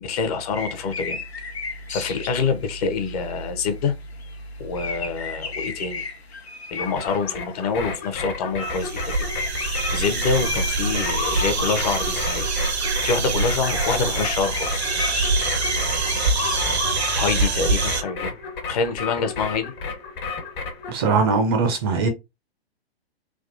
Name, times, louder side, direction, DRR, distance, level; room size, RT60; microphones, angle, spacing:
voice 1, 0.0-1.2 1.9-3.9 4.6-6.1 6.7-9.2 9.6-12.5 13.0-14.9 17.2-18.4 18.7-19.7, left 5 dB, 35° left, 0.6 m, -26 dB
sound 1, 0.5-3.4 3.7-7.2 7.6-7.7 8.0-8.1 8.8-12.3 13.3-13.4 14.1-17.1, left 5 dB, 75° left, 0.9 m, -34 dB
sound 2, 6.8-20.9, left 4 dB, 55° left, 1.3 m, -31 dB
sound 3, 8.6-18.0, right 4 dB, 80° right, 0.7 m, -25 dB
voice 2, 20.9-22.1, right 4 dB, 25° right, 0.4 m, -20 dB
3.4 x 2.3 x 2.4 m
figure-of-eight pair, 110°, 32 cm